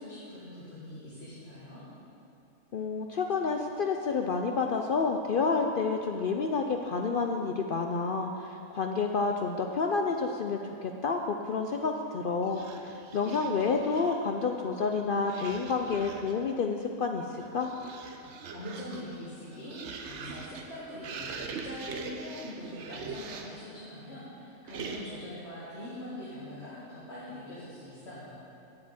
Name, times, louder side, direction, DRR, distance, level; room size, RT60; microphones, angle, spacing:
voice 1, 0.0-1.8 18.5-21.3 21.6-28.4, left 1 dB, 45° left, -10 dB, 2.4 m, -43 dB
voice 2, 2.7-17.7, left 4 dB, 85° left, 3 dB, 0.4 m, -29 dB
sound 1, 12.4-14.3 15.2-16.5 17.2-23.7 24.7-25.3, right 4 dB, 55° right, 0.9 m, -42 dB
7.8 x 7.4 x 8.6 m, 2.6 s
omnidirectional pair, 1.6 m